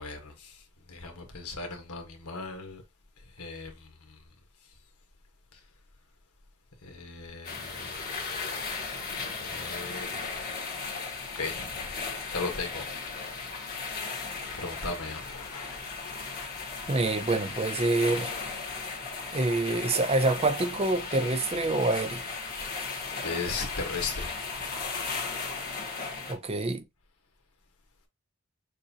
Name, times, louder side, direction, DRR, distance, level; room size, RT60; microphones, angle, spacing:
voice 1, 0.0-2.8 3.2-4.2 5.5-5.6 6.8-7.9 8.5-8.6 9.2-10.2 11.3-11.9 12.3-12.8 14.3-15.8 23.2-24.7, left 4 dB, 90° left, 1.5 m, -37 dB
sound 1, 7.4-26.3, left 4 dB, 40° left, 1.8 m, -36 dB
voice 2, 16.9-18.3 19.3-22.2 26.3-26.8, right 2 dB, 25° right, 0.5 m, -26 dB
6.6 x 2.6 x 2.8 m
head